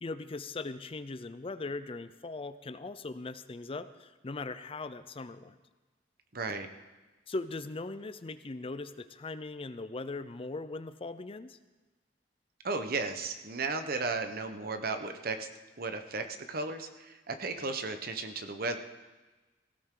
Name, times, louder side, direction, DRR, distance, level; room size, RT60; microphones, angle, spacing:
voice 1, 0.0-5.6 7.3-11.6, left 3 dB, 30° left, 12 dB, 0.5 m, -39 dB
voice 2, 6.3-6.7 12.6-15.5 15.8-18.8, right 3 dB, 55° right, 7 dB, 1.1 m, -35 dB
17.5 x 15.5 x 3.8 m, 1.2 s
head